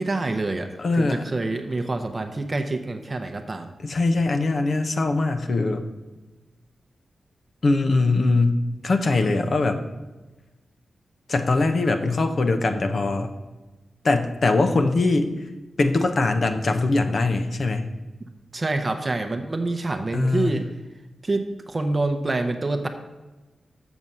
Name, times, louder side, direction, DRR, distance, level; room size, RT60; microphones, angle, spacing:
voice 1, 0.0-3.7 18.5-20.7 21.2-22.9, right 2 dB, 35° right, 6 dB, 0.7 m, -26 dB
voice 2, 0.8-1.2 3.8-5.8 7.6-9.8 11.3-13.3 14.0-15.3 15.8-17.9 20.1-20.6, left 3 dB, 55° left, 7 dB, 0.8 m, -22 dB
7.1 x 6.1 x 5.4 m, 1.2 s
cardioid pair, 75°, 0 cm